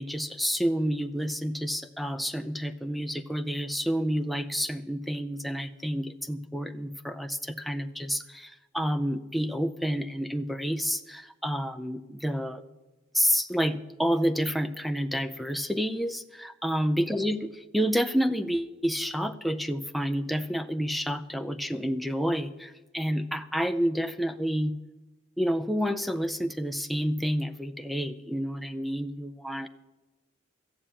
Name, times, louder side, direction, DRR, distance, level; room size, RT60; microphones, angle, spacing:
voice 1, 0.0-12.6 13.1-24.8 25.4-29.7, equal, ahead, 8 dB, 0.5 m, -29 dB
15.0 x 7.3 x 8.6 m, 1.1 s
head